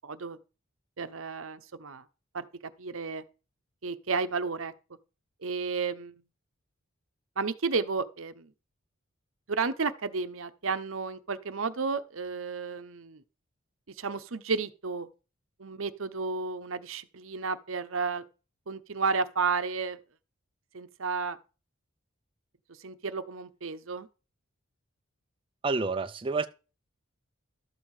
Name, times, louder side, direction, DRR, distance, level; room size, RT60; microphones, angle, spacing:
voice 1, 0.0-0.4 1.0-2.0 2.3-3.2 3.8-4.7 5.4-6.1 7.4-8.5 9.5-13.2 13.9-15.1 15.6-18.2 18.7-20.0 20.7-21.4 22.8-24.1, right 4 dB, 70° right, 0.8 m, -32 dB
voice 2, 25.6-26.5, right 3 dB, 25° right, 0.5 m, -28 dB
12.5 x 7.4 x 4.9 m
head